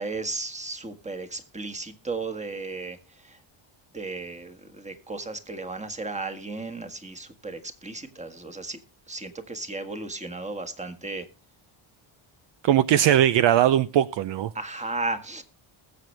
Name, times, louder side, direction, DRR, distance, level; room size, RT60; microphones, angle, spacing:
voice 1, 0.0-3.4 3.9-8.8 9.1-11.3 14.5-15.4, right 3 dB, 15° right, 1.6 m, -34 dB
voice 2, 12.6-14.5, right 11 dB, 60° right, 0.6 m, -20 dB
20.0 x 7.8 x 3.3 m
cardioid pair, 135°, 50 cm